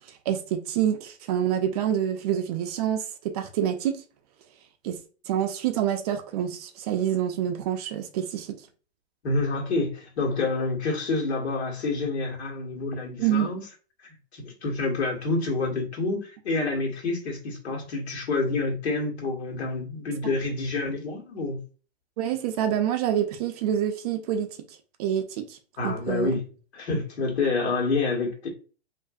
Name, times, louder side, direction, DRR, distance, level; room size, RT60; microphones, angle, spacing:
voice 1, 0.3-4.0 4.8-5.0 5.3-8.5 13.2-13.5 22.2-24.5 25.0-25.6 25.8-26.3, right 10 dB, 40° right, 0.4 m, -27 dB
voice 2, 9.2-13.6 14.3-21.6 25.8-26.4 26.7-28.5, left 3 dB, 75° left, 1.3 m, -28 dB
2.5 x 2.5 x 2.3 m
hypercardioid pair, 120°, 33 cm